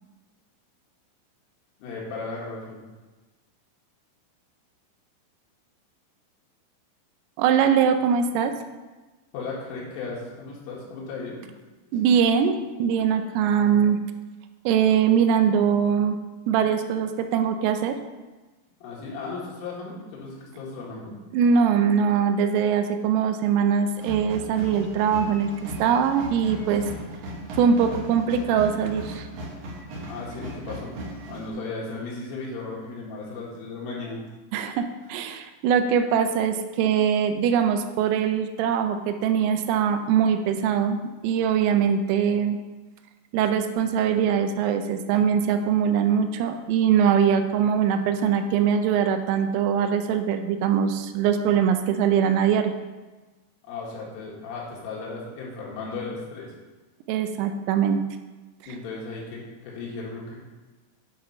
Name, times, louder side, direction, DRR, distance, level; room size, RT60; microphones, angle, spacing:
voice 1, 1.8-2.8 9.3-11.4 18.8-21.1 30.1-31.0 31.3-34.2 53.6-56.5 58.7-60.4, left 3 dB, 80° left, -5 dB, 4.3 m, -35 dB
voice 2, 7.4-8.5 11.9-14.0 14.7-16.2 16.5-18.0 21.3-26.9 27.6-29.3 34.5-41.0 41.2-42.6 43.3-52.7 57.1-58.0, right 7 dB, 85° right, 7 dB, 3.2 m, -22 dB
sound 1, 24.0-31.5, right 1 dB, 65° right, 2.3 m, -37 dB
9.6 x 3.7 x 5.6 m, 1.2 s
omnidirectional pair, 5.8 m